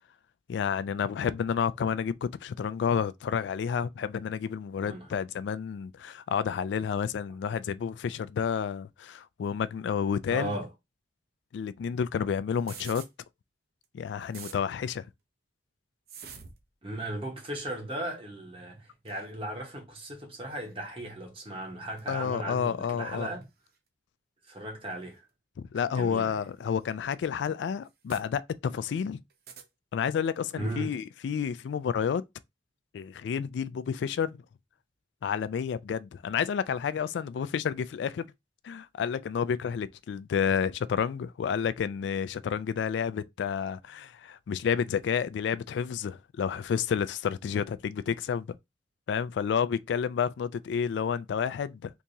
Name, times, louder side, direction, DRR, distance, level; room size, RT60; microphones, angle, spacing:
voice 1, 0.5-10.5 11.5-13.0 13.9-15.0 22.1-23.3 25.7-29.2 29.9-32.2 32.9-34.3 35.2-38.3 38.6-48.5 49.1-51.9, left 7 dB, 75° left, 0.3 m, -30 dB
voice 2, 10.3-10.7 16.8-23.5 24.4-25.2 25.7-26.4 30.5-31.0, right 1 dB, 30° right, 1.2 m, -37 dB
sound 1, 12.5-13.1 13.8-13.9 14.2-14.6 16.1-16.6 17.4-17.6 19.1-19.3 20.5-20.7 22.0-22.1 23.4-23.5 24.9-25.0 26.4-26.5 26.8-26.9 27.8-28.2 29.3-29.7, right 7 dB, 55° right, 0.7 m, -46 dB
3.5 x 2.8 x 2.7 m
head